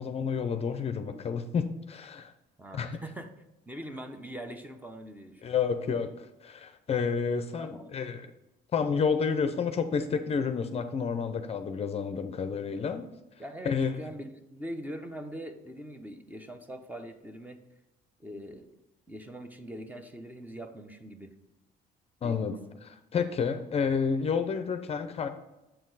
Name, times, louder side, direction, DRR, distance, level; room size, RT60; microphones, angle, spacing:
voice 1, 0.0-2.3 2.7-3.0 5.4-8.3 8.7-13.1 13.6-14.0 22.2-25.3, left 6 dB, 35° left, 9 dB, 0.5 m, -30 dB
voice 2, 2.6-3.3 3.7-5.5 7.6-7.9 13.4-17.6 18.2-18.7 19.1-21.3 22.2-22.4, right 1 dB, 10° right, 7 dB, 0.7 m, -42 dB
7.7 x 4.4 x 3.9 m, 0.97 s
cardioid pair, 110°, 17 cm